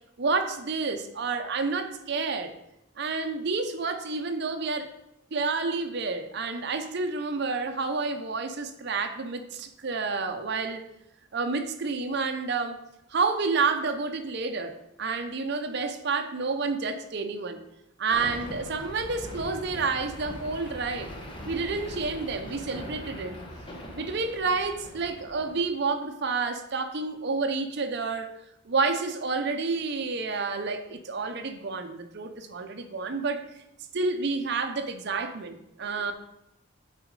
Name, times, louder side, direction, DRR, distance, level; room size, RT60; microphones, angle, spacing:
voice 1, 0.2-2.5 3.0-4.9 5.3-10.8 11.3-12.8 13.1-17.6 18.0-21.1 21.5-23.4 23.9-28.3 28.7-33.4 33.9-36.1, right 4 dB, 55° right, 6 dB, 0.6 m, -29 dB
sound 1, 18.1-25.6, equal, 25° left, 0.9 m, -41 dB
7.5 x 4.1 x 4.7 m, 0.85 s
head